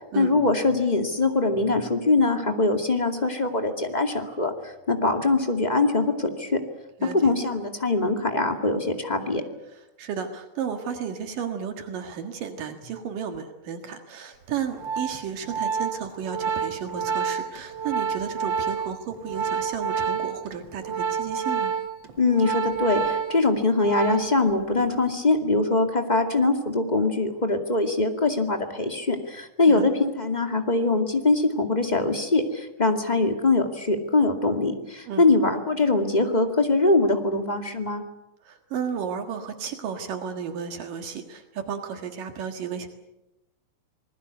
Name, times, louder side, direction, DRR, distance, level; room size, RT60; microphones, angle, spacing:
voice 1, 0.2-6.6 7.1-9.4 22.2-38.0, left 3 dB, 15° left, 5 dB, 1.7 m, -23 dB
voice 2, 7.0-7.3 9.7-21.8 29.7-29.9 35.1-35.3 38.4-42.9, right 7 dB, 75° right, 6 dB, 3.3 m, -33 dB
Organ, 14.5-24.5 24.8-25.1, right 6 dB, 50° right, 1.6 m, -29 dB
27.0 x 20.5 x 8.2 m, 0.93 s
omnidirectional pair, 4.0 m